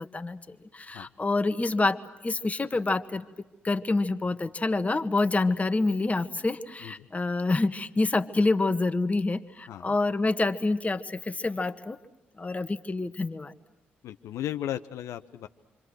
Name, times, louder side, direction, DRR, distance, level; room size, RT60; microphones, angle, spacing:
voice 1, 0.0-3.2 3.6-12.0 12.4-13.5, left 3 dB, 25° left, 9 dB, 1.6 m, -27 dB
voice 2, 14.0-15.5, left 12 dB, 70° left, 10 dB, 0.8 m, -35 dB
28.5 x 25.0 x 6.4 m, 1.0 s
hypercardioid pair, 40°, 5 cm